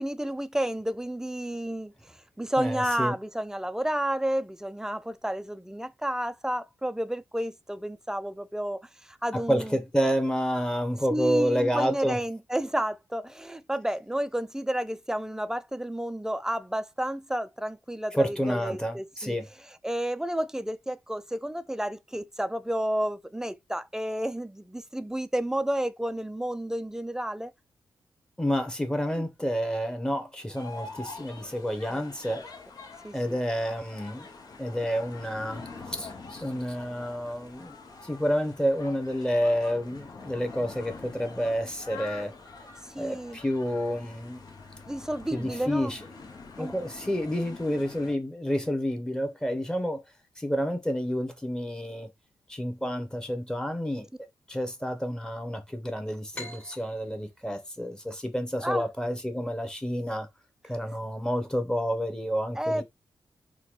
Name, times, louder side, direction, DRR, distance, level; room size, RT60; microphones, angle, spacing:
voice 1, 0.0-1.9 2.4-8.8 9.1-9.7 11.1-19.4 19.8-27.5 29.2-29.3 31.9-32.0 32.3-32.4 33.0-33.4 43.0-43.4 44.9-45.9 46.6-46.7 58.6-58.8 62.6-62.8, right 1 dB, 5° right, 0.4 m, -31 dB
voice 2, 2.6-3.1 9.3-12.2 18.2-19.5 28.4-32.4 33.1-34.2 34.6-35.6 35.9-37.7 38.0-42.3 43.0-44.4 45.3-46.0 46.6-50.0 50.4-52.1 52.5-54.1 54.5-60.3 60.7-62.8, equal, 10° left, 1.0 m, -29 dB
sound 1, 30.5-48.1, left 4 dB, 55° left, 0.9 m, -45 dB
sound 2, 56.3-59.7, left 2 dB, 25° left, 1.7 m, -46 dB
3.8 x 2.2 x 3.1 m
cardioid pair, 60°, 8 cm